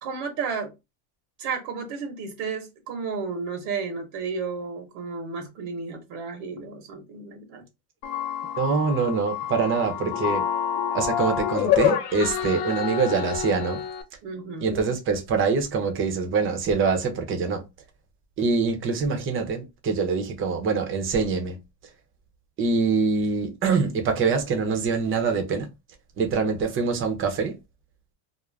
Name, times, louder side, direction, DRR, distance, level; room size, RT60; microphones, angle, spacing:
voice 1, 0.0-0.7 1.4-7.6 14.2-14.8, right 5 dB, 75° right, 1.0 m, -32 dB
sound 1, 8.0-14.0, left 9 dB, 75° left, 0.7 m, -27 dB
voice 2, 8.6-10.5 10.9-13.8 14.6-17.6 18.4-21.6 22.6-25.7 26.2-27.6, right 4 dB, 25° right, 0.6 m, -24 dB
2.4 x 2.0 x 3.2 m
cardioid pair, 135°, 47 cm